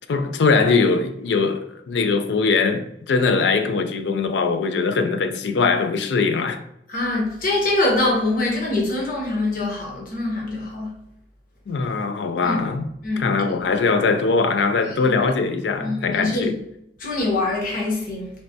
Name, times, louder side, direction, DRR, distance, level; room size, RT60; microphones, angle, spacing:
voice 1, 0.1-6.6 11.7-12.8 13.2-16.5, left 4 dB, 80° left, 0.4 m, -21 dB
voice 2, 6.9-11.0 12.4-12.7 13.0-13.3 15.0-15.1 15.8-16.6 17.0-18.3, left 2 dB, 55° left, 1.0 m, -24 dB
3.2 x 3.1 x 2.6 m
head